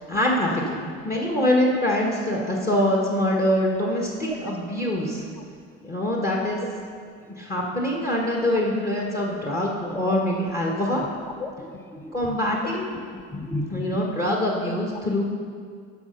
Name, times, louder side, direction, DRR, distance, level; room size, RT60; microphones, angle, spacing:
voice 1, 0.0-5.3 5.8-6.6 7.3-11.0 12.1-12.9 13.7-15.2, left 1 dB, 25° left, -2 dB, 1.6 m, -24 dB
voice 2, 5.4-5.9 7.3-7.4 8.6-8.7 9.9-10.2 11.4-12.6 13.1-14.2, left 2 dB, 5° left, 5 dB, 0.7 m, -35 dB
12.5 x 5.1 x 5.5 m, 2.1 s
supercardioid pair, 70°, 34 cm